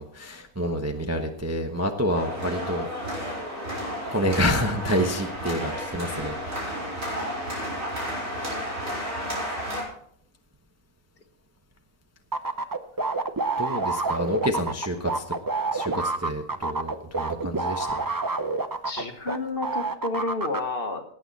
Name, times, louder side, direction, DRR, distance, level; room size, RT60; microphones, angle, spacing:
voice 1, 0.0-3.4 4.0-6.4 13.6-15.2 15.7-18.0, equal, 15° right, 3 dB, 0.8 m, -28 dB
sound 1, 2.1-9.8, equal, 60° right, 4.9 m, -32 dB
sound 2, 12.3-19.4 19.6-20.6, right 3 dB, 30° right, 0.4 m, -28 dB
voice 2, 18.8-21.0, left 3 dB, 40° left, 5 dB, 1.5 m, -30 dB
17.5 x 9.1 x 4.1 m, 0.63 s
omnidirectional pair, 1.6 m